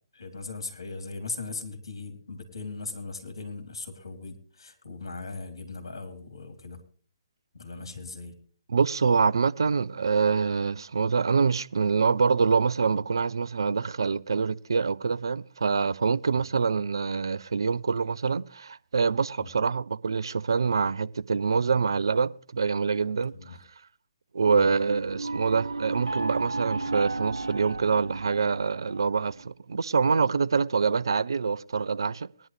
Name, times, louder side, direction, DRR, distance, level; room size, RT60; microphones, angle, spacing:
voice 1, 0.1-6.8 7.5-8.3 16.3-16.4 19.4-19.5 23.3-23.6 24.5-24.7, left 3 dB, 70° left, 3.1 m, -39 dB
voice 2, 8.7-23.3 24.3-32.3, right 5 dB, 65° right, 0.5 m, -25 dB
sound 1, 24.4-29.4, right 3 dB, 80° right, 0.9 m, -34 dB
19.5 x 11.0 x 3.3 m
figure-of-eight pair, 135°, 2 cm